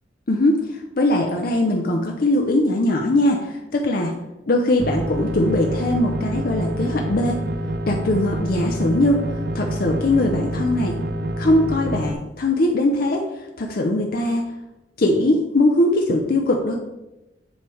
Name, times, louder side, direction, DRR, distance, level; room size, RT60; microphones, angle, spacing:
voice 1, 0.3-4.2 4.5-7.4 7.9-9.2 9.6-11.0 11.4-13.2 13.6-14.5 15.0-16.8, left 1 dB, 55° left, 1 dB, 0.7 m, -20 dB
sound 1, 4.8-12.1, right 1 dB, 65° right, 0.6 m, -27 dB
9.7 x 3.3 x 4.8 m, 0.99 s
head